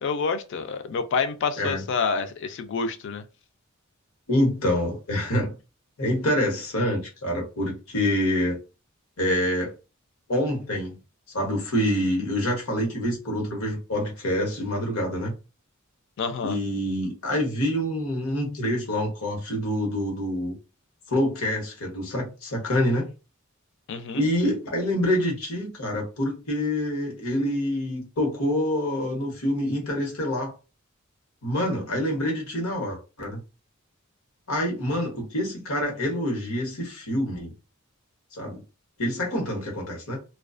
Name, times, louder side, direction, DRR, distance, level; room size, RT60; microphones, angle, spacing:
voice 1, 0.0-3.2 16.2-16.6 23.9-24.3, left 5 dB, 60° left, 0.4 m, -28 dB
voice 2, 4.3-5.5 6.0-8.6 9.2-9.7 10.3-11.0 11.3-15.3 16.4-20.5 21.1-23.1 24.2-30.5 31.4-33.4 34.5-37.5 38.3-38.6 39.0-40.2, left 1 dB, 85° left, 1.0 m, -26 dB
2.3 x 2.3 x 2.4 m
head